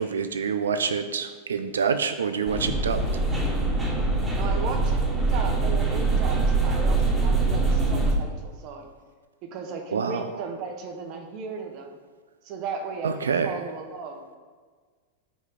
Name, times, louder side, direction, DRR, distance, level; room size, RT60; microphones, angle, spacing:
voice 1, 0.0-3.0 9.9-10.3 13.0-13.6, right 6 dB, 70° right, 9 dB, 0.3 m, -26 dB
sound 1, 2.5-8.1, right 3 dB, 10° right, 1.5 m, -23 dB
voice 2, 4.3-8.9 9.4-12.0 12.4-14.2, right 5 dB, 40° right, 4 dB, 1.0 m, -36 dB
5.5 x 4.5 x 4.9 m, 1.5 s
figure-of-eight pair, 90°, 0 cm